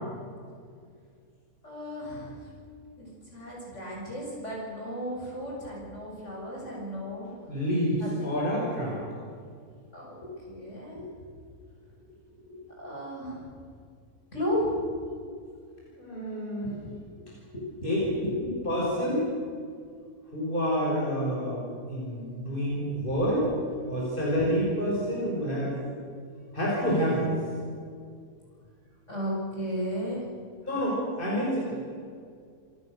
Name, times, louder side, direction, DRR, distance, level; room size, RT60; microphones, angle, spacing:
voice 1, 1.6-2.4 3.0-7.4 8.0-8.3 9.9-11.1 12.0-13.5 14.3-14.8 16.6-16.9 17.5-18.3 23.9-24.1 29.1-30.3, equal, 55° left, -3 dB, 7.5 m, -35 dB
voice 2, 7.5-9.0 16.0-16.7 17.8-18.0 18.6-19.3 20.3-23.5 23.9-25.7 26.5-27.3 30.7-31.9, equal, 35° left, -5 dB, 6.2 m, -28 dB
28.0 x 19.0 x 6.8 m, 2.2 s
omnidirectional pair, 1.5 m